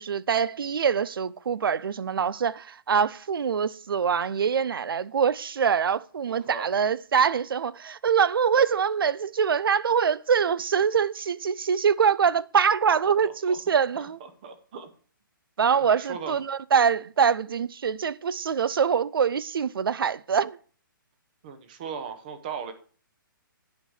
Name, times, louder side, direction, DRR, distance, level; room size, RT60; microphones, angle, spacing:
voice 1, 0.0-14.2 15.6-20.6, right 7 dB, 80° right, 0.5 m, -24 dB
voice 2, 6.3-6.7 13.0-13.6 13.9-14.9 15.8-16.4 21.4-22.7, right 6 dB, 25° right, 0.9 m, -38 dB
9.3 x 5.1 x 6.4 m
hypercardioid pair, 175°, 12 cm